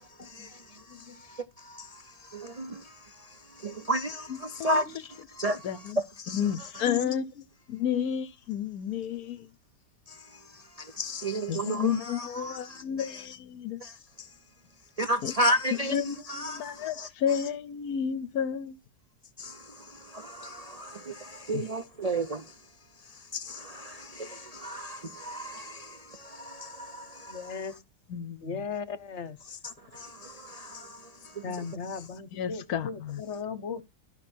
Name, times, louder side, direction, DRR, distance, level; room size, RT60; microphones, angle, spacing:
voice 1, 0.0-5.7 6.2-6.4 6.8-6.9 10.1-13.2 13.8-14.3 15.0-16.0 16.3-17.1 19.4-22.6 23.0-27.7 29.4-32.0, right 1 dB, 75° right, 0.3 m, -34 dB
voice 2, 5.6-6.0 6.3-7.2 7.7-9.5 11.5-13.8 15.2-15.3 15.9-18.8 21.5-21.6 28.1-28.6 32.3-33.2, left 8 dB, 65° left, 1.1 m, -31 dB
voice 3, 6.9-7.3 7.9-8.1 27.3-27.7 28.4-29.4 31.4-33.8, left 6 dB, 45° left, 1.2 m, -37 dB
13.0 x 5.8 x 4.4 m
omnidirectional pair, 1.8 m